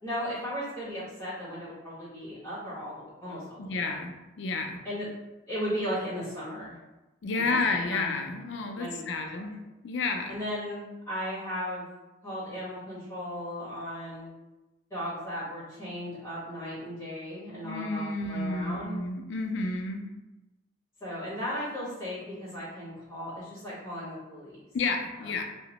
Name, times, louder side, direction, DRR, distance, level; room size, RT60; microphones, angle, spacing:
voice 1, 0.0-3.9 4.8-5.1 5.5-6.8 7.3-7.6 7.9-8.1 8.7-9.4 10.3-11.9 12.2-14.3 14.9-19.0 21.0-24.6 25.2-25.3, equal, 15° left, -12 dB, 1.3 m, -36 dB
voice 2, 3.6-4.8 7.2-10.4 17.6-20.1 24.7-25.5, left 3 dB, 70° left, 4 dB, 0.4 m, -31 dB
2.8 x 2.1 x 2.9 m, 1.0 s
head